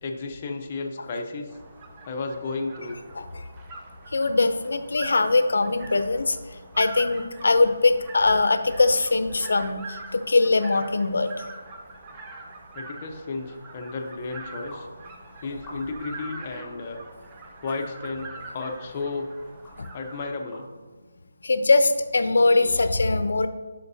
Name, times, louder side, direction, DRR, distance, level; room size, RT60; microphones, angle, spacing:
voice 1, 0.0-1.5 2.1-3.0 12.7-14.9 15.4-17.0 17.6-19.3 19.9-20.7, left 3 dB, 25° left, 2 dB, 0.6 m, -33 dB
sound 1, 1.5-20.3, right 3 dB, 15° right, 0.5 m, -43 dB
voice 2, 4.1-11.4 19.8-19.9 21.4-23.5, left 3 dB, 70° left, 10 dB, 0.6 m, -22 dB
sound 2, 14.7-14.9 15.6-16.1 16.6-16.8 17.7-17.8 18.7-18.8 19.6-19.7 20.5-20.6, left 1 dB, 5° left, 2.2 m, -45 dB
11.5 x 5.1 x 2.7 m, 1.4 s
hypercardioid pair, 175°, 0 cm